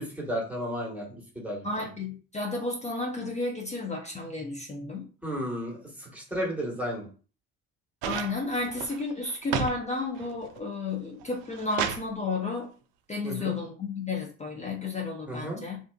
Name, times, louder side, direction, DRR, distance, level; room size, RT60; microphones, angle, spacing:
voice 1, 0.0-1.7 5.2-7.1 13.2-13.6 15.3-15.6, equal, 5° right, -4 dB, 1.2 m, -33 dB
voice 2, 1.6-5.1 8.0-12.7 13.1-15.8, left 3 dB, 15° left, 0 dB, 0.4 m, -32 dB
sound 1, 8.0-9.8 10.2-10.7 11.2-12.1 13.3-13.4, right 7 dB, 55° right, 0.5 m, -33 dB
2.5 x 2.3 x 2.2 m, 0.37 s
hypercardioid pair, 65°, 48 cm